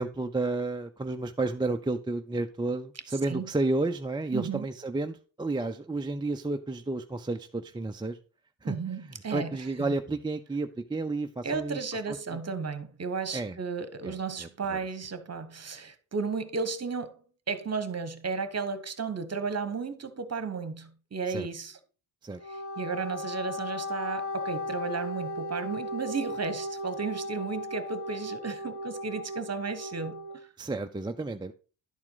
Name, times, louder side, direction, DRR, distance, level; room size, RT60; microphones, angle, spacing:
voice 1, 0.0-8.2 8.6-8.8 9.0-11.8 12.1-12.4 13.3-13.6 14.0-14.8 21.3-21.5 22.2-22.4 30.6-31.5, right 2 dB, 10° right, 0.5 m, -31 dB
voice 2, 4.3-4.7 8.6-9.6 11.4-17.2 17.5-21.8 22.5-30.2, right 5 dB, 30° right, 1.1 m, -34 dB
Wind instrument woodwind instrument, 22.3-30.4, left 1 dB, 65° left, 2.0 m, -36 dB
11.0 x 4.4 x 3.9 m
cardioid pair, 65°, 50 cm